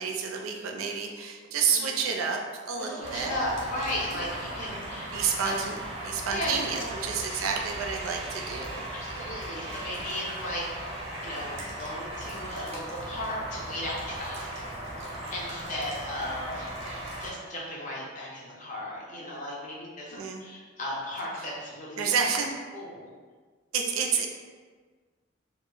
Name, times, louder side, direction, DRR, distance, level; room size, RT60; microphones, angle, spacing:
voice 1, 0.0-3.4 4.1-4.2 5.1-5.8 6.0-8.8 20.1-20.4 22.0-22.7 23.7-24.3, right 6 dB, 85° right, 2 dB, 0.4 m, -29 dB
voice 2, 1.7-2.0 2.8-5.1 5.4-5.6 6.3-7.3 8.9-10.6 11.2-14.7 15.0-16.7 17.2-22.2 22.7-23.1, left 1 dB, 40° left, -4 dB, 0.6 m, -36 dB
sound 1, 3.0-17.3, right 1 dB, 30° right, 0.5 m, -37 dB
2.1 x 2.1 x 3.6 m, 1.5 s
head